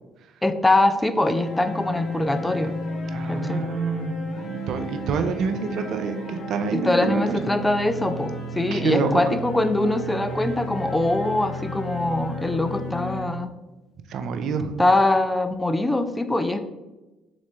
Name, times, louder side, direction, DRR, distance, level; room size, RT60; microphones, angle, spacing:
voice 1, 0.4-2.7 3.3-3.6 6.7-13.5 14.8-16.6, left 2 dB, 15° left, 9 dB, 0.3 m, -23 dB
sound 1, 1.3-13.2, equal, 45° left, 1.4 m, -32 dB
voice 2, 3.1-4.2 4.5-7.4 8.7-9.2 14.1-14.7, right 6 dB, 65° right, 8 dB, 0.4 m, -27 dB
3.6 x 3.1 x 3.3 m, 1.1 s
hypercardioid pair, 60°, 0 cm